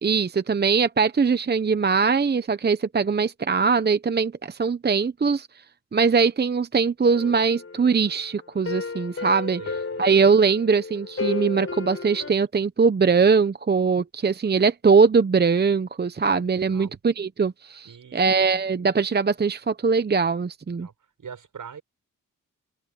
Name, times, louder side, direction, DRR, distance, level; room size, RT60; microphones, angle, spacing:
voice 1, 0.0-5.5 5.9-9.6 10.0-20.9, right 5 dB, 30° right, 0.8 m, -21 dB
sound 1, 7.1-12.3, left 4 dB, 40° left, 7.7 m, -33 dB
voice 2, 9.6-10.1 16.5-17.0 17.8-18.5 20.7-20.9 21.2-21.8, right 7 dB, 65° right, 7.1 m, -43 dB
cardioid pair, 85°, 34 cm